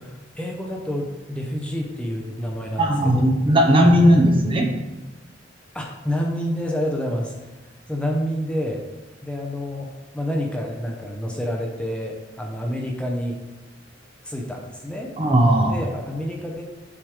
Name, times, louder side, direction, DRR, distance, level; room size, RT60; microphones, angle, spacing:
voice 1, 0.0-2.9 3.1-3.3 3.8-4.3 5.7-7.3 7.9-8.8 9.2-13.4 14.2-15.1 15.7-16.6, equal, 5° left, 0 dB, 0.7 m, -28 dB
voice 2, 2.8-4.7 15.2-15.8, equal, 30° right, 2 dB, 0.8 m, -17 dB
7.3 x 3.2 x 4.8 m, 1.1 s
head